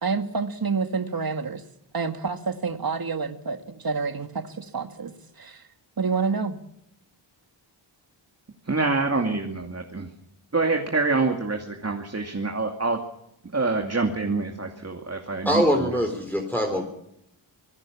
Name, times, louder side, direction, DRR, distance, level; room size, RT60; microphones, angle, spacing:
voice 1, 0.0-1.6 1.9-5.6 6.0-6.6, right 5 dB, 45° right, 8 dB, 2.0 m, -28 dB
voice 2, 8.7-10.1 10.5-13.0 13.5-16.0, right 3 dB, 30° right, 3 dB, 2.5 m, -26 dB
voice 3, 15.4-16.9, equal, 5° left, 1 dB, 3.9 m, -23 dB
26.0 x 17.5 x 7.3 m, 0.80 s
wide cardioid pair, 85°, 49 cm